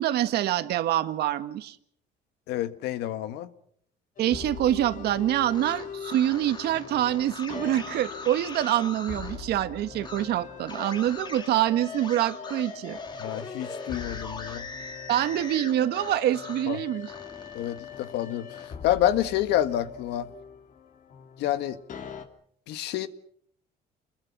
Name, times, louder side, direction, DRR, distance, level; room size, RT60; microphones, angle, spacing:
voice 1, 0.0-1.8 4.2-13.0 15.1-17.1, right 12 dB, 75° right, 1.7 m, -26 dB
voice 2, 2.5-3.5 13.2-14.7 16.7-16.8 17.5-20.3 21.4-21.8 22.7-23.1, left 12 dB, 85° left, 1.7 m, -28 dB
sound 1, 4.2-22.3, left 7 dB, 50° left, 2.9 m, -42 dB
sound 2, 5.4-9.4 10.0-10.2 10.7-16.7 17.0-18.7, left 3 dB, 25° left, 3.3 m, -41 dB
28.5 x 22.0 x 6.1 m
cardioid pair, 110°, 17 cm